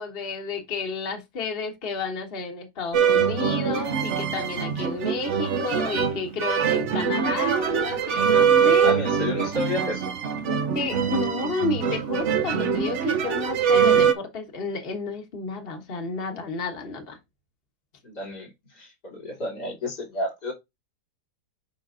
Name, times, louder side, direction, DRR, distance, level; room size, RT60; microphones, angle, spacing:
voice 1, 0.0-9.0 10.7-17.2, left 4 dB, 40° left, 1.4 m, -31 dB
sound 1, 2.9-14.1, right 7 dB, 60° right, 0.8 m, -23 dB
voice 2, 8.8-10.1 18.0-18.5 18.8-20.5, left 1 dB, 80° left, 3.5 m, -31 dB
8.6 x 5.4 x 2.5 m
omnidirectional pair, 1.7 m